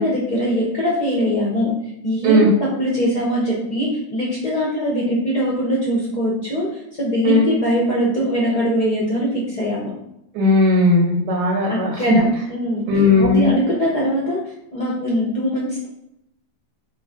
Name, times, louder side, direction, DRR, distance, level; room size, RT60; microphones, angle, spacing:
voice 1, 0.0-1.7 2.0-6.7 7.0-9.9 11.7-12.8 13.2-14.4 14.7-15.9, equal, 50° left, -6 dB, 0.5 m, -21 dB
voice 2, 10.3-12.2 12.9-13.5, left 2 dB, 85° right, -1 dB, 1.2 m, -16 dB
3.1 x 2.3 x 3.5 m, 0.81 s
omnidirectional pair, 1.7 m